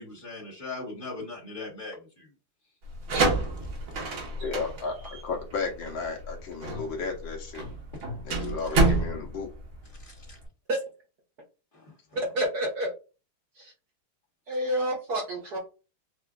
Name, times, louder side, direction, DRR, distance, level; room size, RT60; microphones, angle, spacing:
voice 1, 0.0-2.3 8.4-8.5 10.0-10.4 11.7-11.9, left 3 dB, 30° left, -3 dB, 1.3 m, -40 dB
sound 1, 2.8-10.4, right 2 dB, 75° right, 2.1 m, -28 dB
voice 2, 4.4-7.6 8.3-9.5, left 4 dB, 70° left, 1 dB, 1.6 m, -33 dB
voice 3, 12.1-12.9 13.6-13.7 14.5-15.6, right 1 dB, 60° right, 0 dB, 1.2 m, -28 dB
6.0 x 2.4 x 2.3 m, 0.32 s
omnidirectional pair, 2.3 m